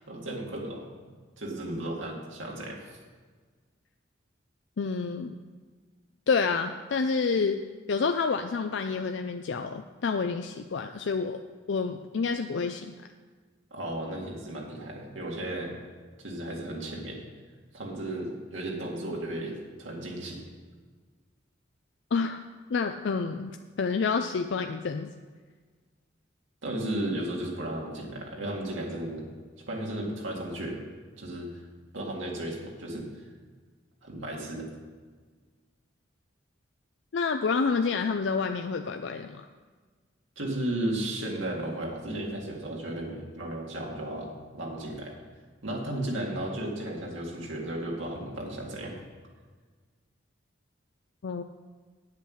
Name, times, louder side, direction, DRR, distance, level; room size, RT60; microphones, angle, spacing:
voice 1, 0.1-0.8 1.4-3.0 13.7-15.8 16.2-17.3 17.7-20.4 26.6-29.3 29.7-30.8 31.2-31.6 31.9-33.3 34.0-34.7 40.4-45.1 45.6-49.0, right 1 dB, 85° right, -2 dB, 2.1 m, -34 dB
voice 2, 4.8-5.3 6.3-7.6 7.9-11.4 11.7-12.9 22.1-22.4 22.7-25.1 37.1-39.4 51.2-51.4, left 5 dB, 70° left, 7 dB, 0.4 m, -28 dB
8.6 x 8.3 x 6.3 m, 1.5 s
head